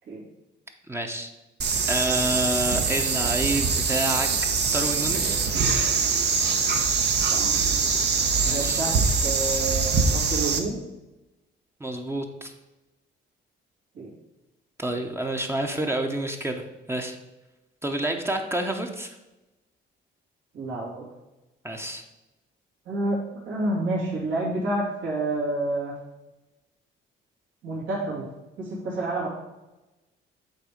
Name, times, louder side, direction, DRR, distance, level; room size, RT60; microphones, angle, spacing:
voice 1, 0.9-1.3 1.9-4.3 4.7-5.4 8.4-8.8 11.8-12.5 14.8-16.6 16.9-17.2 17.8-19.1 21.6-22.0, right 1 dB, 10° right, 3 dB, 0.8 m, -28 dB
sound 1, 1.6-10.6, right 5 dB, 60° right, 0.9 m, -23 dB
voice 2, 8.5-8.9 9.2-10.8 13.9-14.1 20.5-21.0 22.9-23.2 23.5-25.9 27.6-28.3 28.6-29.3, right 2 dB, 75° right, -5 dB, 2.5 m, -28 dB
8.0 x 3.5 x 5.0 m, 1.0 s
cardioid pair, 90°, 20 cm